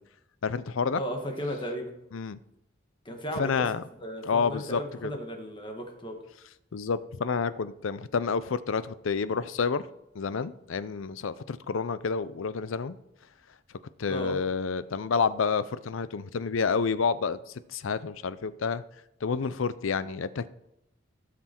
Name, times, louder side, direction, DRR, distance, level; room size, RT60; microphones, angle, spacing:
voice 1, 0.4-1.0 2.1-2.4 3.4-3.8 4.3-5.1 6.7-9.8 10.1-13.0 14.0-17.4 17.7-18.8 19.2-20.5, left 5 dB, 75° left, 15 dB, 0.5 m, -29 dB
voice 2, 1.0-1.9 3.0-6.2 14.1-14.4, equal, 25° left, 3 dB, 1.5 m, -35 dB
16.5 x 6.0 x 4.4 m, 0.85 s
head